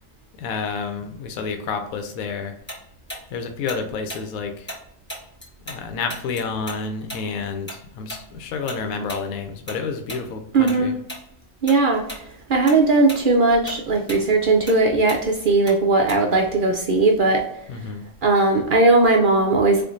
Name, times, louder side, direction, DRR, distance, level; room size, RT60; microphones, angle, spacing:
voice 1, 0.4-2.5 3.3-4.7 5.7-11.0 17.7-18.0, left 5 dB, 90° left, 6 dB, 1.0 m, -29 dB
Tick-tock, 2.7-5.8 6.1-10.8 11.1-11.3 11.7-12.2 12.5-16.5, equal, 10° left, 1.0 m, -37 dB
voice 2, 10.5-10.9 11.6-12.0 12.5-17.4 18.2-19.8, right 3 dB, 75° right, 1 dB, 0.4 m, -18 dB
4.4 x 2.5 x 2.5 m, 0.72 s
omnidirectional pair, 1.4 m